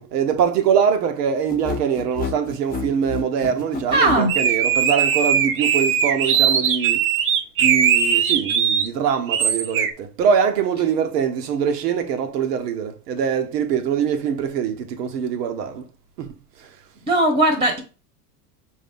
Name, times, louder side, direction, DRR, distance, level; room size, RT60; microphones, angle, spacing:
voice 1, 0.0-7.1 7.6-15.9 16.2-16.7, right 7 dB, 80° right, 1.0 m, -23 dB
sound 1, 1.5-4.3, left 5 dB, 20° left, 0.9 m, -29 dB
voice 2, 3.9-4.3 17.0-17.8, right 2 dB, 10° right, 1.0 m, -18 dB
sound 2, 4.3-8.9 9.3-9.9, right 8 dB, 30° right, 0.5 m, -19 dB
5.0 x 2.7 x 3.6 m
supercardioid pair, 115°, 47 cm